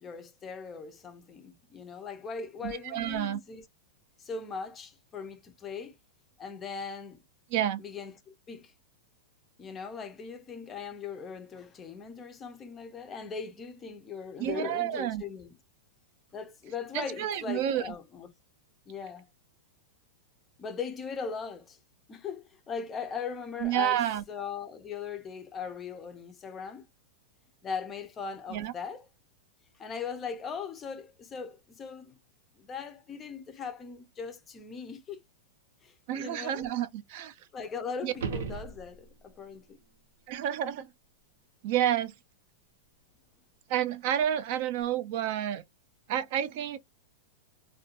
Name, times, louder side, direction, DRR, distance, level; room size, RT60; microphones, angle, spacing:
voice 1, 0.0-3.6 4.2-6.0 6.4-7.2 7.8-8.7 9.6-15.5 16.3-18.3 18.9-19.3 20.6-21.8 22.1-26.9 27.6-29.1 29.8-32.1 32.6-35.2 35.8-36.7 37.5-39.8, left 6 dB, 20° left, 0.4 m, -39 dB
voice 2, 2.6-3.4 7.5-7.8 14.4-15.2 16.9-17.9 23.6-24.2 28.5-28.7 36.1-37.3 38.0-38.1 40.3-40.9 41.6-42.1 43.7-45.6 46.1-46.8, right 11 dB, 50° right, 0.3 m, -30 dB
sound 1, 38.1-39.3 44.2-44.3, right 5 dB, 75° right, 0.7 m, -37 dB
2.4 x 2.2 x 2.7 m
supercardioid pair, 155°, 0 cm